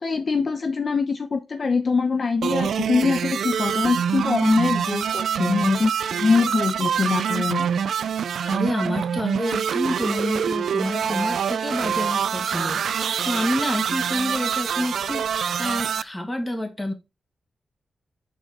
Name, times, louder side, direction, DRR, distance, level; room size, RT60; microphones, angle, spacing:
voice 1, 0.0-7.7, left 4 dB, 50° left, 0.9 m, -23 dB
sound 1, 2.4-16.0, right 8 dB, 85° right, 0.3 m, -25 dB
voice 2, 8.5-16.9, left 1 dB, 15° left, 2.1 m, -28 dB
6.5 x 4.8 x 4.2 m
cardioid pair, 65°, 0 cm